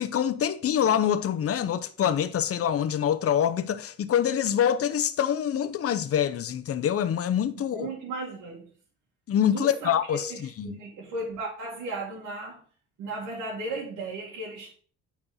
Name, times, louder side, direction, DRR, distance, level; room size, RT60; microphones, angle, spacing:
voice 1, 0.0-7.9 9.3-10.3 10.6-10.8, left 9 dB, 50° left, 0.7 m, -25 dB
voice 2, 7.7-8.7 9.5-12.6 13.0-14.7, right 2 dB, 85° right, 2.2 m, -35 dB
8.9 x 4.3 x 3.7 m
cardioid pair, 90°, 30 cm